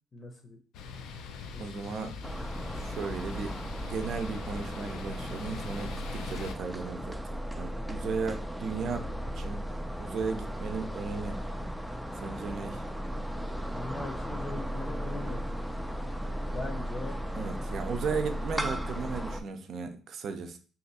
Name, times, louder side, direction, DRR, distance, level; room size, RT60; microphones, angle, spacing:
voice 1, 0.1-0.6 1.5-2.0 7.8-8.1 13.7-15.4 16.4-17.2 17.6-17.7, left 2 dB, 30° left, 2 dB, 0.7 m, -41 dB
sound 1, 0.7-6.6, left 5 dB, 80° left, 0.4 m, -43 dB
voice 2, 1.6-2.2 2.7-3.5 3.8-9.6 10.0-11.4 12.2-12.8 17.3-20.6, right 5 dB, 60° right, 7 dB, 0.6 m, -36 dB
sound 2, 2.2-19.4, equal, ahead, 0.4 m, -36 dB
2.8 x 2.5 x 4.1 m, 0.38 s
supercardioid pair, 70°, 0 cm